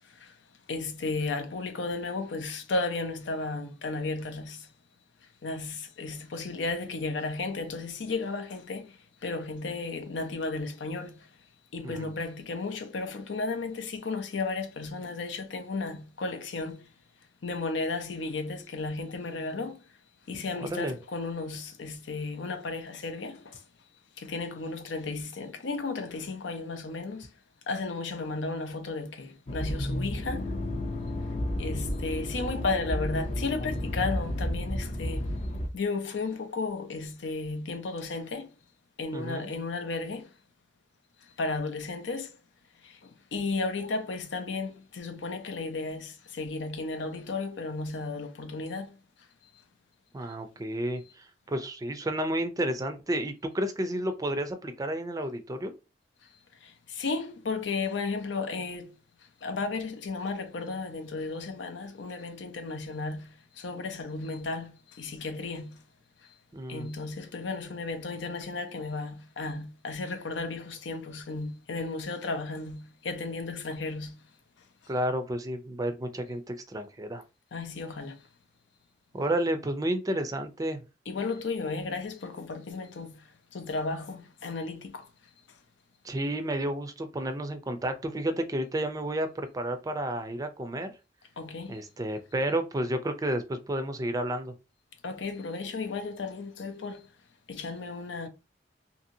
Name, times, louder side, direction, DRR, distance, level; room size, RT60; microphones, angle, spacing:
voice 1, 0.7-4.7 5.4-8.9 9.2-11.3 11.7-16.9 17.4-19.8 20.3-23.6 24.2-27.3 27.7-30.4 31.6-35.4 35.7-38.5 39.0-40.3 41.4-42.3 42.8-49.0 56.6-58.9 59.4-65.8 66.7-74.2 77.5-78.2 81.1-83.2 83.5-85.1 91.4-91.8 95.0-97.1 97.5-98.3, left 3 dB, 85° left, 0.6 m, -34 dB
voice 2, 20.6-20.9 39.1-39.5 50.1-55.8 66.5-66.9 74.9-77.2 79.1-80.8 86.0-90.9 91.7-94.5, right 1 dB, 20° right, 0.4 m, -31 dB
Accelerating revving vroom, 29.5-35.7, left 1 dB, 40° left, 0.5 m, -32 dB
2.8 x 2.7 x 2.6 m
head